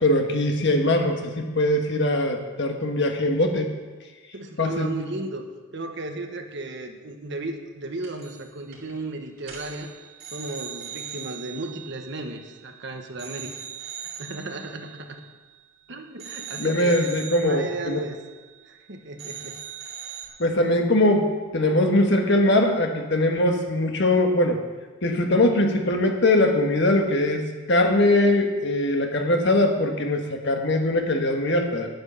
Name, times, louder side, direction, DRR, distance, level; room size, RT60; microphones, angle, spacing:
voice 1, 0.0-3.7 4.6-4.9 16.6-18.0 20.4-24.6 25.0-31.9, left 1 dB, 60° left, 3 dB, 1.5 m, -21 dB
voice 2, 4.3-5.5 5.7-9.9 10.3-13.5 14.2-15.2 15.9-17.1 17.4-18.2 18.6-19.6, right 2 dB, 60° right, 5 dB, 1.3 m, -35 dB
sound 1, 8.0-8.5 8.7-8.9 9.4-12.8 13.2-15.8 16.2-18.9 19.2-20.3, right 9 dB, 80° right, 3.3 m, -40 dB
10.0 x 9.3 x 6.9 m, 1.3 s
head